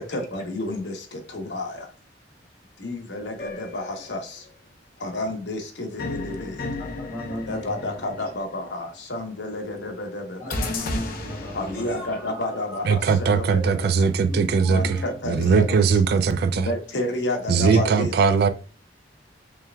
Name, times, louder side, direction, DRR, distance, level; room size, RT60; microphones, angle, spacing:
voice 1, 0.0-1.9 2.8-4.5 5.0-6.6 7.5-10.7 11.5-14.1 14.7-16.0 16.5-18.2, left 1 dB, 75° left, 1.0 m, -31 dB
sound 1, 3.4-4.4 6.0-8.7 10.5-12.2, left 2 dB, 55° left, 0.8 m, -34 dB
voice 2, 6.8-8.0 10.4-12.6 14.3-15.1 17.7-17.8, equal, 30° left, 1.8 m, -36 dB
voice 3, 12.9-16.7 17.5-18.5, right 5 dB, 60° right, 0.3 m, -20 dB
4.5 x 3.4 x 2.2 m
head